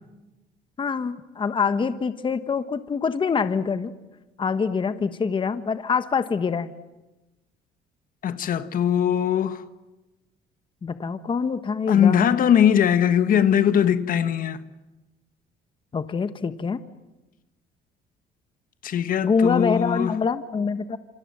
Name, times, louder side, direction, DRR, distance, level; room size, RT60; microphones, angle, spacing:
voice 1, 0.8-3.9 4.4-6.7 10.8-12.4 15.9-16.8 19.2-21.0, left 5 dB, 30° left, 1.3 m, -25 dB
voice 2, 8.2-9.6 11.9-14.6 18.8-20.2, left 9 dB, 55° left, 1.4 m, -20 dB
27.5 x 26.5 x 7.7 m
cardioid pair, 110°, 17 cm